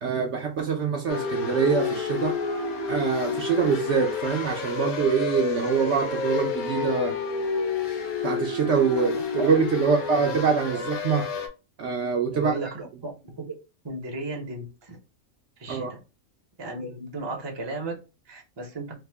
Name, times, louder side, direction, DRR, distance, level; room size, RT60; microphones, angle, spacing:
voice 1, 0.0-2.3 2.9-7.2 8.2-11.3 11.8-12.5 15.7-15.9, right 6 dB, 65° right, 0.8 m, -24 dB
sound 1, 1.1-11.5, left 5 dB, 80° left, 1.2 m, -29 dB
voice 2, 10.1-10.8 12.2-13.1 13.8-15.0 15.6-16.0 16.6-18.0 18.3-18.9, right 2 dB, 25° right, 0.6 m, -35 dB
3.4 x 2.0 x 3.3 m
omnidirectional pair, 1.5 m